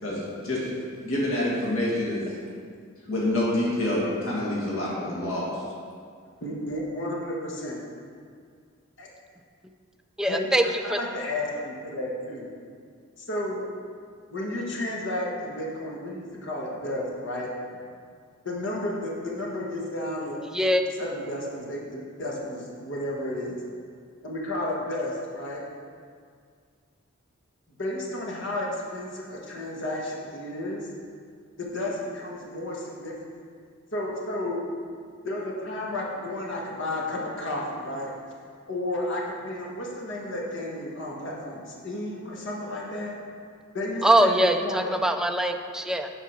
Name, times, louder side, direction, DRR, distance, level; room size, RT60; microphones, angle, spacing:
voice 1, 0.0-2.3 3.1-5.6, left 1 dB, 80° left, -6 dB, 2.1 m, -27 dB
voice 2, 6.4-7.8 9.0-9.1 10.2-10.5 10.8-12.5 13.2-13.6 14.3-17.5 18.4-20.4 21.0-23.6 24.2-25.6 27.8-30.9 31.6-33.1 33.9-34.6 35.2-38.1 38.7-43.2 43.7-44.3 44.6-44.8, left 1 dB, 60° left, -3 dB, 1.6 m, -32 dB
voice 3, 10.2-11.0 20.5-20.8 44.0-46.1, right 1 dB, 5° right, 5 dB, 0.4 m, -22 dB
8.2 x 4.9 x 6.0 m, 2.1 s
head